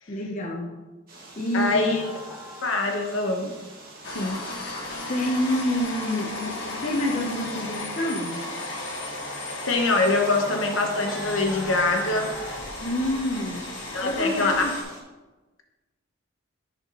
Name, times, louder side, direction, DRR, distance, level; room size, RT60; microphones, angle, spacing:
voice 1, 0.1-0.8 1.4-2.0 5.1-8.5 12.8-14.8, left 1 dB, 35° left, 0 dB, 0.6 m, -28 dB
sound 1, 1.1-15.0, right 2 dB, 45° right, 1.4 m, -47 dB
voice 2, 1.5-2.0 2.6-3.5 4.1-4.4 9.6-12.3 13.9-14.6, left 3 dB, 75° left, 3 dB, 1.0 m, -24 dB
sound 2, 1.6-3.9 4.3-4.7 6.9-7.0 8.1-8.7 9.4-12.6, equal, ahead, 1.3 m, -41 dB
sound 3, 4.0-14.8, left 2 dB, 55° left, 1.4 m, -35 dB
10.5 x 4.4 x 2.9 m, 1.2 s
head